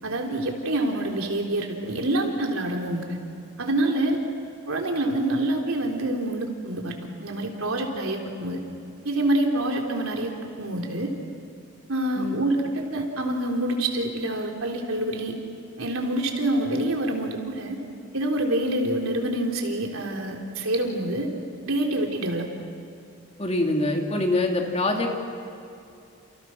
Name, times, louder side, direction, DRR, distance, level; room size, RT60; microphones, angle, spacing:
voice 1, 0.0-3.2 3.6-4.2 4.7-8.6 9.0-11.1 11.9-12.6 12.9-15.3 15.8-17.8 18.1-21.3 21.7-22.5, right 1 dB, 85° right, 1 dB, 3.9 m, -26 dB
voice 2, 23.4-25.2, left 2 dB, 30° left, 1 dB, 3.0 m, -24 dB
30.0 x 30.0 x 6.3 m, 2.6 s
head